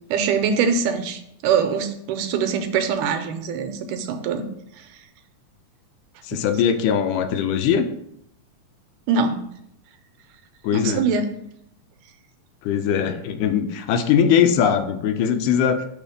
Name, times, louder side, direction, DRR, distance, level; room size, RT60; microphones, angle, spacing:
voice 1, 0.1-4.5 6.3-6.4 9.1-9.4 10.7-11.2, right 6 dB, 85° right, 7 dB, 2.1 m, -23 dB
voice 2, 6.3-7.9 10.6-11.1 12.6-15.8, left 8 dB, 85° left, 8 dB, 2.1 m, -20 dB
6.1 x 3.5 x 5.0 m, 0.74 s
omnidirectional pair, 3.7 m